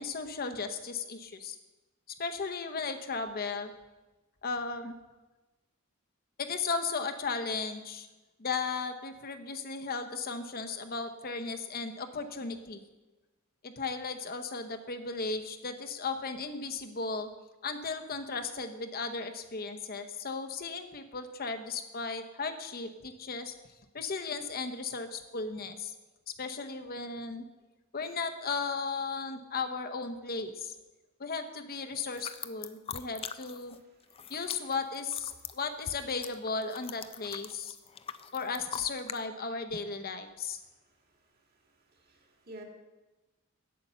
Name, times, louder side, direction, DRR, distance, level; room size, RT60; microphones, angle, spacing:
voice 1, 0.0-1.6 2.2-3.7 4.4-4.9 6.4-8.1 8.4-12.8 13.6-17.3 17.6-23.5 23.9-25.9 26.4-27.4 27.9-30.7 31.2-33.8 34.3-37.8 38.3-40.6, left 4 dB, 45° left, 7 dB, 0.9 m, -35 dB
sound 1, 32.1-33.8 34.0-39.2, left 7 dB, 25° left, 0.4 m, -43 dB
voice 2, 41.9-42.6, right 1 dB, 45° right, 1 dB, 2.2 m, -48 dB
8.7 x 8.5 x 6.8 m, 1.1 s
head